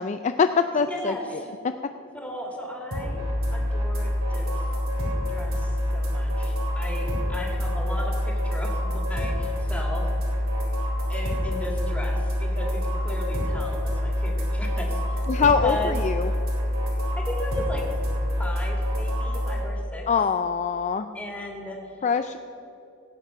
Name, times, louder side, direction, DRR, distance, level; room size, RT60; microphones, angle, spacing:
voice 1, 0.0-1.4 15.3-16.3 20.1-21.1 22.0-22.4, left 5 dB, 35° left, 9 dB, 0.4 m, -23 dB
voice 2, 0.7-1.5 2.1-3.2 3.5-4.7 5.3-10.0 11.1-16.0 17.1-17.8 18.4-20.1 21.1-22.0, equal, 5° left, 0 dB, 2.2 m, -36 dB
sound 1, 2.9-19.6, left 1 dB, 80° right, 3.3 m, -26 dB
17.0 x 8.3 x 5.7 m, 3.0 s
head